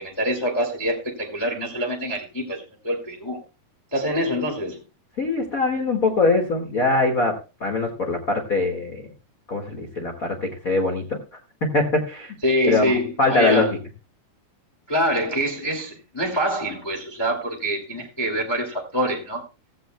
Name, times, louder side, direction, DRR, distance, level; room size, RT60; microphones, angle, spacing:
voice 1, 0.0-3.4 3.9-4.8 12.4-13.7 14.9-19.4, equal, 15° left, 1.0 m, -25 dB
voice 2, 5.2-7.3 7.6-9.0 9.5-11.2 11.7-12.4 12.6-12.9 13.2-13.8, left 3 dB, 40° left, 1.2 m, -22 dB
16.0 x 14.5 x 2.2 m
omnidirectional pair, 4.4 m